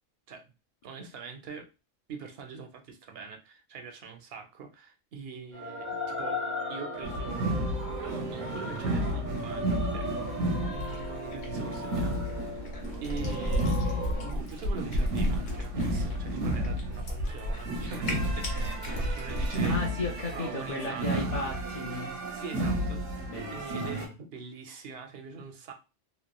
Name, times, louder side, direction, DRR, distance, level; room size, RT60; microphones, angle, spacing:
voice 1, 0.8-1.7 2.1-6.4 6.7-7.9 8.2-10.1 10.7-12.7 13.0-19.9 20.3-21.3 22.3-25.7, right 5 dB, 60° right, 5 dB, 0.7 m, -43 dB
sound 1, 5.5-14.3, left 1 dB, 20° right, 0.4 m, -37 dB
sound 2, 7.0-24.1, right 1 dB, 85° right, 1.0 m, -33 dB
Cat, 10.7-19.7, equal, 80° left, 1.3 m, -34 dB
voice 2, 19.6-22.1 23.3-24.1, left 2 dB, 55° left, -1 dB, 0.4 m, -35 dB
3.0 x 2.0 x 2.2 m, 0.29 s
omnidirectional pair, 1.3 m